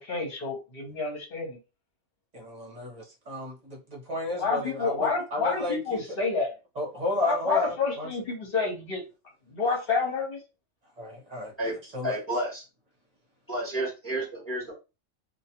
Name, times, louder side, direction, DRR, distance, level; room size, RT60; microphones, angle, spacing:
voice 1, 0.0-1.6 4.4-6.5 7.2-9.0 9.5-10.4, left 4 dB, 50° left, 1.2 m, -28 dB
voice 2, 2.3-6.0 6.8-8.1 11.0-11.5 11.9-12.2, equal, 35° right, 1.0 m, -33 dB
voice 3, 12.0-12.6 13.5-14.7, right 1 dB, 10° left, 0.9 m, -31 dB
2.5 x 2.3 x 2.8 m
omnidirectional pair, 1.3 m